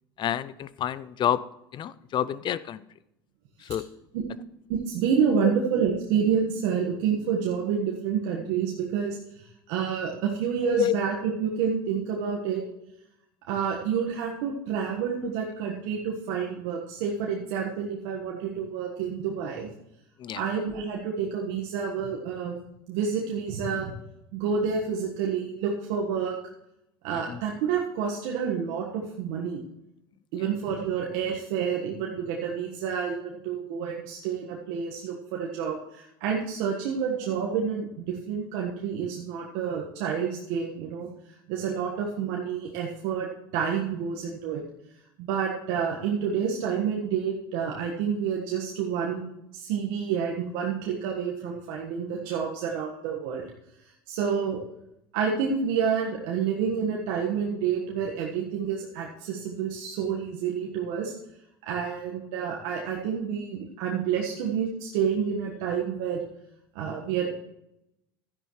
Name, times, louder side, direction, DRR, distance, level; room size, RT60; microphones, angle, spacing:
voice 1, 0.2-1.4 1.7-2.8 3.6-3.8 5.3-5.5 10.6-11.0 20.2-20.4 27.3-27.4, left 10 dB, 40° left, 17 dB, 0.6 m, -28 dB
voice 2, 4.7-12.6 13.5-19.7 20.3-22.6 22.9-23.9 24.3-26.4 27.0-29.6 30.3-41.1 41.5-44.6 45.2-53.5 54.1-54.6 55.1-61.1 61.6-66.2 66.7-67.3, right 7 dB, 70° right, -1 dB, 1.5 m, -29 dB
12.5 x 10.0 x 3.2 m, 0.83 s
hypercardioid pair, 85°, 12 cm